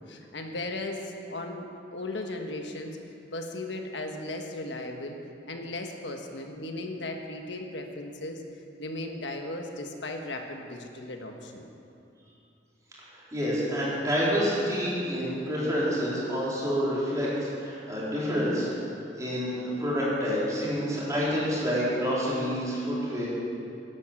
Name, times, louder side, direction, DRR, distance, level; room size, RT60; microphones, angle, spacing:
voice 1, 0.1-1.7 1.9-3.0 3.3-5.2 5.5-8.4 8.8-11.7, left 2 dB, 85° left, 3 dB, 1.5 m, -36 dB
voice 2, 13.3-17.3 17.6-18.7 19.2-23.3, equal, 20° right, -8 dB, 4.3 m, -28 dB
11.5 x 11.0 x 7.6 m, 2.7 s
head